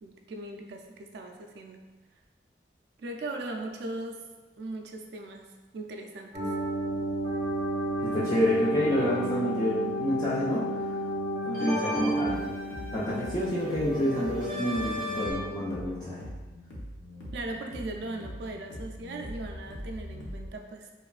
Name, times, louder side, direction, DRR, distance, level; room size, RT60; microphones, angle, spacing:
voice 1, 0.0-1.8 3.0-4.3 4.6-5.5 5.7-6.6 17.3-20.9, right 2 dB, 65° right, 3 dB, 0.3 m, -39 dB
sound 1, 6.3-15.3, right 1 dB, 25° right, 0.7 m, -32 dB
voice 2, 8.0-11.0 11.4-12.5 12.9-16.3, equal, 20° left, -9 dB, 0.4 m, -28 dB
sound 2, 11.9-20.5, left 1 dB, 85° left, 0.6 m, -42 dB
3.0 x 2.3 x 2.4 m, 1.2 s
head